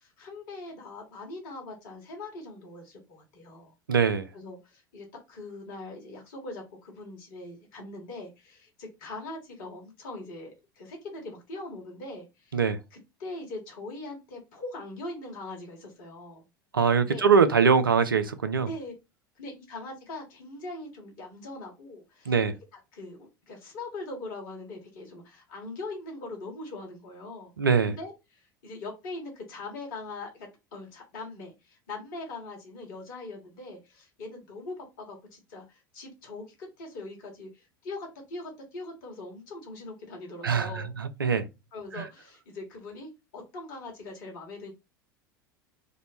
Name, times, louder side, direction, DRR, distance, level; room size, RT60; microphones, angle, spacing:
voice 1, 0.0-3.7 4.3-12.6 12.9-16.4 17.0-17.3 18.7-18.9 19.3-22.3 22.9-27.5 27.9-40.9 41.7-44.7, left 2 dB, 60° left, 1.4 m, -41 dB
voice 2, 3.9-4.3 12.5-12.8 16.7-18.7 22.3-22.6 27.6-28.0 40.4-41.5 41.9-42.0, right 5 dB, 85° right, 0.4 m, -23 dB
3.0 x 2.1 x 4.0 m
figure-of-eight pair, 75°, 11 cm